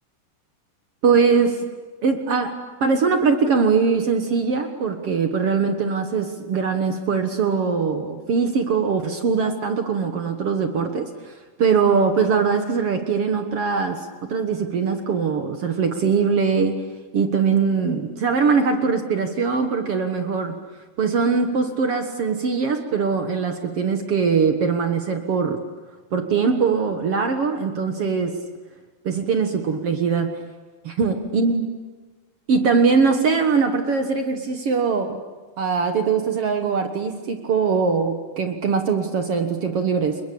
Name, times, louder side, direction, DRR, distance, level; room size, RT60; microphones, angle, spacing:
voice 1, 1.0-1.6 2.0-2.5 2.8-11.3 11.6-16.8 17.1-20.6 21.0-25.6 26.1-28.4 29.0-30.4 30.8-31.6 32.5-35.2 35.6-40.2, right 5 dB, 55° right, 6 dB, 1.7 m, -21 dB
29.0 x 22.5 x 8.6 m, 1.3 s
omnidirectional pair, 4.4 m